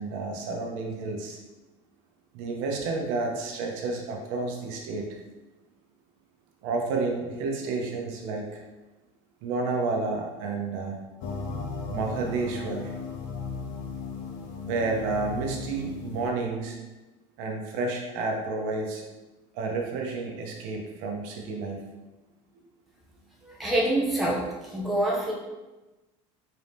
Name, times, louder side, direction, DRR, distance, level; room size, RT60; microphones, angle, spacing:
voice 1, 0.0-1.4 2.3-5.1 6.6-8.6 9.4-11.0 11.9-12.9 14.7-16.8 17.4-19.0 19.5-21.8, right 3 dB, 70° right, 1 dB, 0.8 m, -30 dB
sound 1, 11.2-16.3, left 4 dB, 90° left, 0.6 m, -36 dB
voice 2, 23.4-25.3, right 1 dB, ahead, -5 dB, 0.6 m, -26 dB
3.8 x 2.8 x 3.5 m, 1.1 s
cardioid pair, 175°, 13 cm